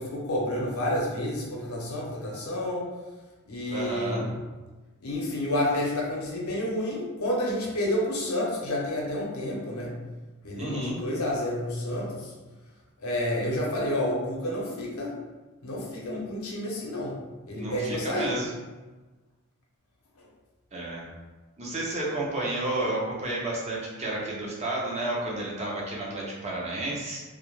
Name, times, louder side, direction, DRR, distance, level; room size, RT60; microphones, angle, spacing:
voice 1, 0.0-2.9 3.5-4.3 5.0-9.9 10.4-12.3 13.0-15.2 15.6-17.2 17.5-18.4 20.2-20.3, left 1 dB, 80° left, -3 dB, 0.7 m, -30 dB
voice 2, 3.7-4.2 10.6-11.0 17.5-18.5 20.7-21.1 21.6-27.2, right 2 dB, 30° right, -4 dB, 0.5 m, -31 dB
2.3 x 2.1 x 3.0 m, 1.2 s
head